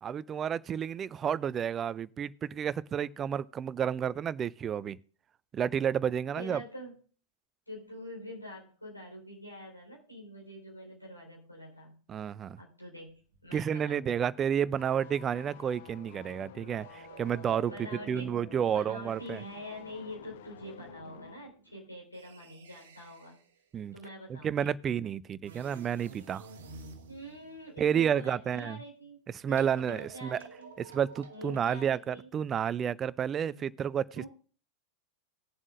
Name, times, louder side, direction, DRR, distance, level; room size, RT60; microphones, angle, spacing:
voice 1, 0.0-5.0 5.5-6.6 12.1-12.6 13.5-17.7 18.1-19.4 23.7-24.0 24.3-26.5 27.8-28.8 29.3-30.4 30.8-34.3, right 8 dB, 25° right, 0.4 m, -31 dB
voice 2, 6.3-6.9 7.7-12.0 12.6-13.1 13.4-14.5 17.7-18.4 18.7-23.4 23.9-24.7 27.1-29.2 29.5-30.7 31.3-32.3 33.4-33.7 34.1-34.3, equal, 85° left, 4.3 m, -46 dB
sound 1, 13.3-13.6 14.0-23.6 25.4-28.2 29.6-31.6, right 5 dB, 60° right, 1.1 m, -52 dB
sound 2, 14.8-21.5 21.7-21.9, left 12 dB, 55° left, 0.5 m, -52 dB
20.0 x 7.2 x 2.6 m
figure-of-eight pair, 90°, 0 cm